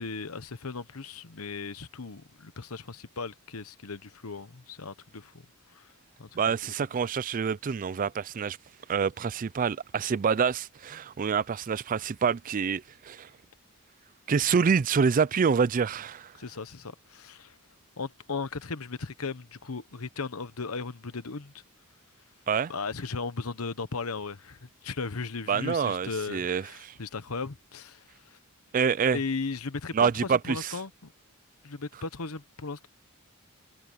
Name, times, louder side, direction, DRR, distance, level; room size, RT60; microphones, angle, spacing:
voice 1, 0.0-5.4 5.7-5.9 6.2-6.3 6.6-6.7 16.4-17.6 18.0-21.5 22.7-28.4 29.1-31.1 31.6-32.9, left 4 dB, 75° left, 1.1 m, -36 dB
voice 2, 6.4-8.6 8.9-13.3 14.3-16.3 22.5-22.7 25.5-26.9 28.7-29.2 29.9-30.7, right 6 dB, 40° right, 0.4 m, -26 dB
head